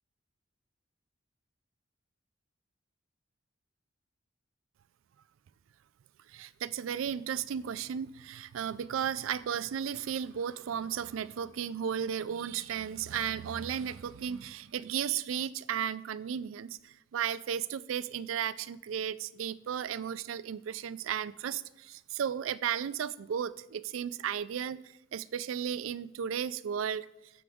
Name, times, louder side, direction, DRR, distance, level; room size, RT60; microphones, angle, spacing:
voice 1, 6.3-27.1, right 8 dB, 85° right, 18 dB, 0.4 m, -34 dB
12.0 x 7.9 x 3.5 m, 0.92 s
head